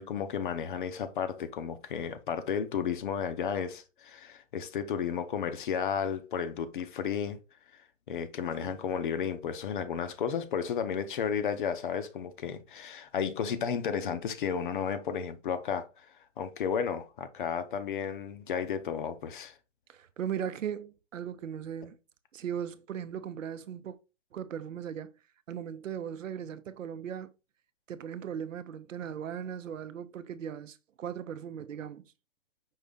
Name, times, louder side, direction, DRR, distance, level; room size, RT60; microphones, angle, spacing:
voice 1, 0.0-7.4 7.7-7.8 8.1-15.9 16.4-19.5, left 7 dB, 40° left, 0.6 m, -33 dB
voice 2, 19.9-22.0 22.3-24.0 24.3-25.1 25.5-27.3 27.9-32.1, right 8 dB, 85° right, 0.7 m, -38 dB
5.5 x 2.8 x 3.5 m
hypercardioid pair, 150°, 38 cm